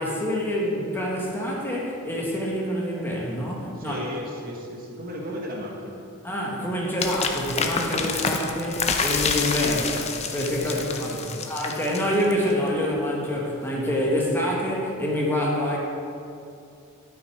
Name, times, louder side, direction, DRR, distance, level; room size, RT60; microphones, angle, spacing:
voice 1, 0.0-4.1 6.2-9.8 10.3-11.1 11.5-15.8, equal, 10° left, -3 dB, 1.2 m, -26 dB
voice 2, 3.8-6.0 9.5-10.0 10.6-11.5, equal, 45° right, -1 dB, 1.0 m, -36 dB
sound 1, 7.0-12.5, left 5 dB, 30° left, 0.5 m, -28 dB
9.1 x 6.0 x 4.6 m, 2.5 s
head